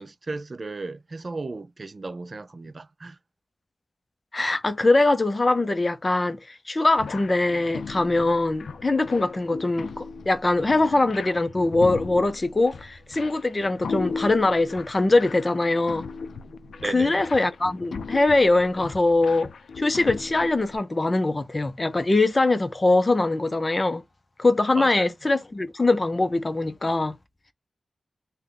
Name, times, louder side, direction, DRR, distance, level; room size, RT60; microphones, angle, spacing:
voice 1, 0.0-3.2 10.6-11.1 16.8-17.2 24.7-25.1, right 3 dB, 40° right, 0.3 m, -35 dB
voice 2, 4.3-16.1 16.8-19.5 19.8-24.0 24.4-27.1, left 2 dB, 30° left, 0.5 m, -22 dB
sound 1, 7.0-20.8, left 5 dB, 90° left, 0.3 m, -37 dB
3.4 x 2.1 x 3.7 m
wide cardioid pair, 105°, 0 cm